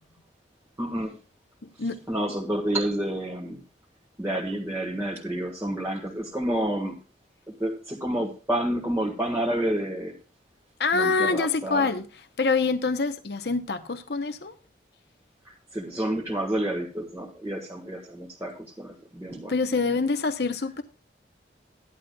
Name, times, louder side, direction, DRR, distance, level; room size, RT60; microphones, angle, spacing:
voice 1, 0.8-1.2 2.1-3.6 4.2-7.0 7.6-10.1 10.9-11.9 15.4-19.5, right 1 dB, 15° right, 1.7 m, -29 dB
voice 2, 1.6-2.0 10.8-12.0 12.4-14.5 19.5-20.8, left 4 dB, 65° left, 0.9 m, -25 dB
15.5 x 11.5 x 2.3 m
head